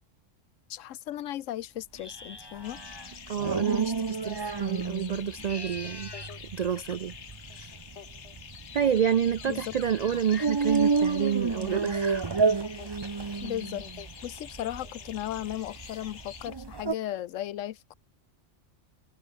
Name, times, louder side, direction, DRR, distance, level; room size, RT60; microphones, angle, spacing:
voice 1, 0.7-2.8 9.4-9.7 13.4-17.9, left 12 dB, 90° left, 1.0 m, -36 dB
sound 1, 1.9-3.2 5.2-6.4, left 2 dB, 20° left, 1.4 m, -44 dB
sound 2, 2.6-16.5, left 7 dB, 65° left, 1.4 m, -46 dB
sound 3, 2.7-16.9, right 4 dB, 25° right, 0.6 m, -31 dB
voice 2, 3.3-6.1 6.4-7.1 7.5-7.8 8.7-12.4, right 8 dB, 75° right, 0.3 m, -29 dB
open air
omnidirectional pair, 1.3 m